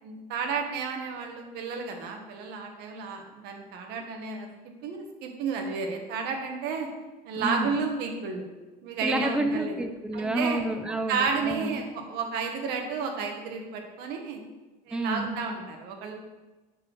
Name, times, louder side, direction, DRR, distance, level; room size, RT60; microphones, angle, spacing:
voice 1, 0.0-4.5 4.8-6.9 7.2-8.4 8.8-9.8 10.1-10.6 11.1-14.4 14.8-16.1, right 5 dB, 60° right, 3 dB, 1.5 m, -32 dB
voice 2, 7.4-7.8 9.0-11.8 14.9-15.4, right 1 dB, 5° right, 6 dB, 0.5 m, -29 dB
7.4 x 6.7 x 4.5 m, 1.2 s
cardioid pair, 170°, 19 cm